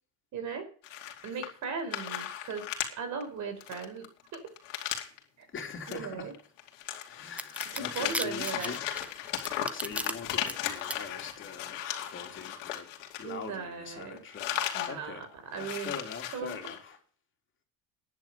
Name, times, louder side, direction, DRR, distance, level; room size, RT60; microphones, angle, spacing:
voice 1, 0.3-0.7 1.2-4.1 4.3-4.4 5.4-5.5 5.9-6.3 7.7-8.7 13.2-14.2 14.7-16.0 16.3-16.6, right 5 dB, 50° right, 4.8 m, -38 dB
sound 1, 0.8-1.6 1.9-2.9 3.2-3.3 3.6-5.2 5.7-5.9 6.3-13.7 14.0-14.9 15.2-15.3 15.5-16.8, left 11 dB, 90° left, 2.7 m, -36 dB
voice 2, 5.5-6.3 7.1-9.3 9.7-12.9 13.2-14.6 14.8-15.2 15.5-17.0, left 5 dB, 35° left, 3.3 m, -42 dB
sound 2, 7.4-10.1 10.5-11.0, right 1 dB, 5° right, 0.9 m, -35 dB
10.5 x 9.3 x 7.0 m
supercardioid pair, 110°, 37 cm